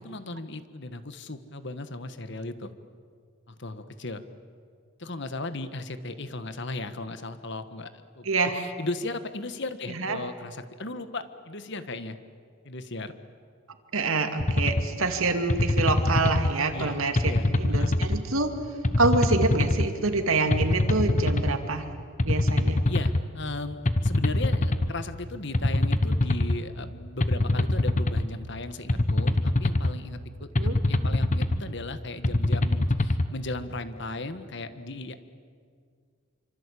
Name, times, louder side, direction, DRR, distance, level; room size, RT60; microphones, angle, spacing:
voice 1, 0.0-2.7 3.5-4.2 5.0-8.2 8.5-12.2 12.6-13.1 16.7-17.5 17.7-17.9 22.9-35.3, left 2 dB, 55° left, 11 dB, 1.5 m, -36 dB
voice 2, 8.2-8.6 9.9-10.2 13.9-18.5 19.0-21.9 22.2-22.8 30.6-30.8, right 3 dB, 80° right, 6 dB, 2.5 m, -26 dB
sound 1, 14.4-14.8 15.5-16.5 17.2-18.2 18.8-19.9 20.5-21.5 22.2-23.2 23.9-24.9 25.5-26.6 27.2-28.2 28.9-29.9 30.6-31.6 32.2-33.3, left 1 dB, 35° left, 1.1 m, -24 dB
27.5 x 25.5 x 8.5 m, 2.1 s
head